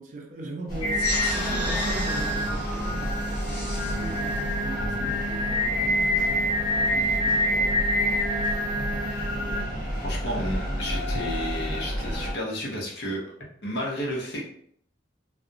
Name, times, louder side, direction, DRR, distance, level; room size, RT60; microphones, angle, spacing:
voice 1, 0.0-8.0, right 2 dB, 45° right, 1 dB, 0.4 m, -40 dB
sound 1, 0.7-12.3, equal, 50° left, 1.1 m, -32 dB
Singing, 0.8-9.6, left 1 dB, 30° left, 0.9 m, -27 dB
sound 2, 0.9-5.9, left 1 dB, 10° left, 1.1 m, -35 dB
voice 2, 10.0-13.2 13.6-14.4, equal, 70° left, -3 dB, 0.8 m, -31 dB
2.4 x 2.0 x 2.6 m, 0.64 s
head